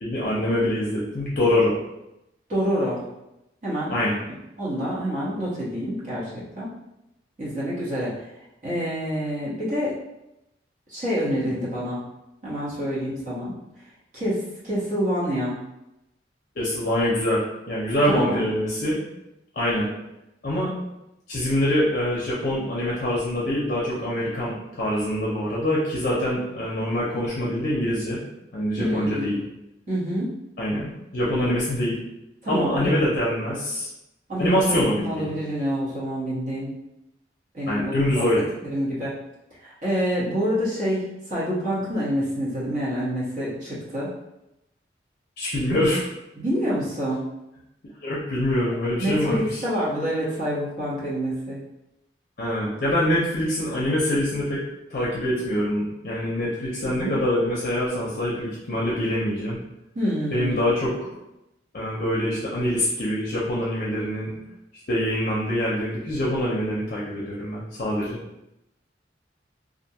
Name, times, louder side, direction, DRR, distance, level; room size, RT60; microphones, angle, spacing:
voice 1, 0.0-1.7 3.9-4.2 16.6-19.0 19.6-19.9 20.4-20.7 21.3-28.2 28.5-29.4 30.6-32.0 32.5-33.9 34.4-35.3 37.7-38.4 45.4-46.0 48.0-49.6 52.4-54.6 54.9-59.6 60.3-61.1 61.7-64.3 64.9-68.2, left 1 dB, 50° left, -6 dB, 0.5 m, -24 dB
voice 2, 2.5-3.0 3.6-3.9 4.3-6.7 7.4-8.1 8.6-9.9 10.9-12.0 12.4-13.5 14.1-15.6 18.1-18.4 28.8-29.4 29.9-30.3 32.4-32.9 34.3-36.7 37.5-38.2 38.6-39.1 39.6-44.1 46.4-47.2 48.9-51.6 56.8-57.1 59.9-60.6, equal, 45° right, -8 dB, 1.0 m, -27 dB
2.4 x 2.2 x 2.7 m, 0.90 s
head